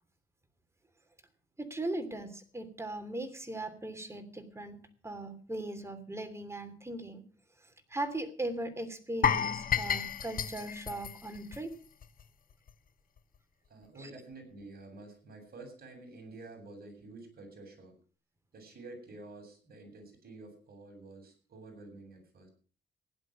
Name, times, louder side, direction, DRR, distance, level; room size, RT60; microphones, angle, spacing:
voice 1, 1.6-4.8 5.0-7.2 7.9-11.7 14.0-14.1, right 1 dB, 15° right, 9 dB, 3.0 m, -38 dB
sound 1, 9.2-12.2 12.5-12.7 13.2-13.3, left 7 dB, 45° left, 1.1 m, -32 dB
voice 2, 13.7-17.9 18.5-22.5, right 2 dB, 50° right, 4 dB, 7.9 m, -49 dB
16.0 x 11.0 x 6.3 m, 0.41 s
cardioid pair, 90°, 20 cm